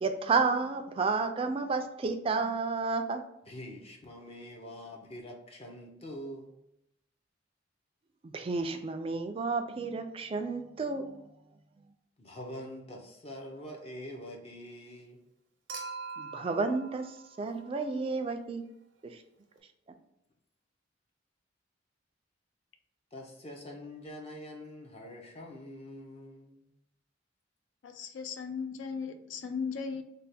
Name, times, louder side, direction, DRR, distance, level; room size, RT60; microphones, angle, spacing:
voice 1, 0.0-3.2 8.2-11.2 16.2-18.6, right 4 dB, 30° right, 7 dB, 0.3 m, -31 dB
voice 2, 3.5-6.6 12.2-15.2 23.1-26.7, equal, 30° left, 1 dB, 0.5 m, -45 dB
Human group actions / Chink clink / Liquid, 15.7-18.1 19.6-19.7, right 4 dB, 85° right, 0.6 m, -43 dB
voice 3, 27.8-30.0, left 5 dB, 80° left, 8 dB, 0.4 m, -37 dB
3.3 x 2.1 x 4.1 m, 0.82 s
head